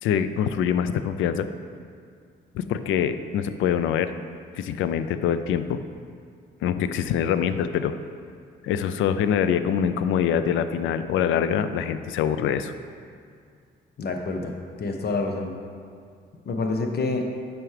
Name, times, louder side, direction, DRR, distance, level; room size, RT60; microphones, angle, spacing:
voice 1, 0.0-1.5 2.5-4.1 4.5-5.8 6.6-7.9 8.6-12.7, left 8 dB, 80° left, 11 dB, 0.4 m, -24 dB
voice 2, 14.0-14.5 14.8-15.5 16.4-17.2, left 3 dB, 55° left, 4 dB, 0.9 m, -27 dB
9.1 x 6.1 x 3.3 m, 2.3 s
cardioid pair, 90°, 20 cm